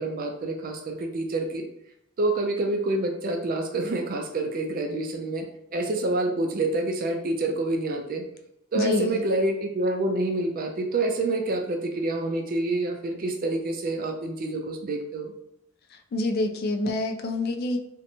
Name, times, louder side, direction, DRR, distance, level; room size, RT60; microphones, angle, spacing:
voice 1, 0.0-1.6 2.2-8.3 8.7-15.3, right 2 dB, 45° right, 4 dB, 0.4 m, -27 dB
voice 2, 8.7-9.2 15.9-17.8, left 2 dB, 50° left, 6 dB, 0.3 m, -27 dB
2.7 x 2.1 x 2.8 m, 0.78 s
head